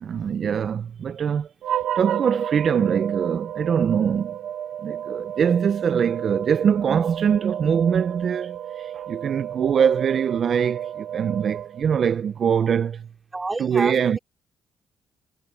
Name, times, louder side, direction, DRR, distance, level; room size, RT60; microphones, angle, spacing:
voice 1, 0.0-4.4 4.8-13.1 13.6-14.2, right 7 dB, 55° right, 0.6 m, -23 dB
sound 1, 1.6-12.2, right 10 dB, 75° right, 1.2 m, -32 dB
voice 2, 13.3-14.2, right 3 dB, 20° right, 4.6 m, -29 dB
cardioid pair, 90°, 0 cm